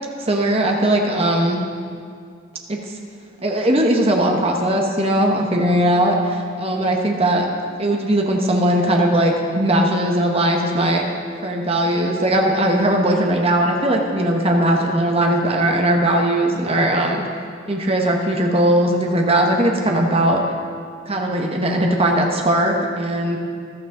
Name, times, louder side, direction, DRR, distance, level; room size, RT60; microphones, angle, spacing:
voice 1, 0.2-1.6 2.7-2.8 3.4-7.5 7.8-11.0 11.4-17.2 17.7-20.4 21.0-23.4, right 1 dB, 30° right, 1 dB, 1.2 m, -19 dB
14.5 x 12.0 x 3.8 m, 2.2 s
head